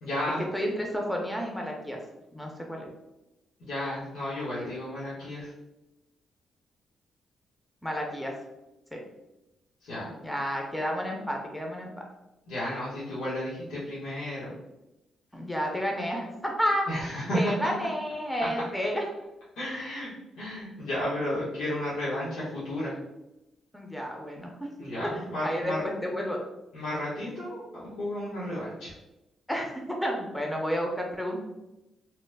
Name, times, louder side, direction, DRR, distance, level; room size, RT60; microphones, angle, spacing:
voice 1, 0.0-0.4 3.6-5.5 9.8-10.1 12.5-14.5 16.9-17.7 18.4-18.5 19.6-20.1 20.4-22.9 24.8-25.8 26.7-28.9, left 1 dB, 85° left, -10 dB, 1.0 m, -32 dB
voice 2, 0.5-2.0 2.3-2.9 7.8-8.3 8.9-9.0 10.2-11.9 15.3-16.9 17.3-19.1 23.7-24.7 25.1-26.4 29.5-29.7 30.0-31.4, equal, 5° left, 0 dB, 0.5 m, -31 dB
3.0 x 2.0 x 3.3 m, 0.94 s
cardioid pair, 110°, 0 cm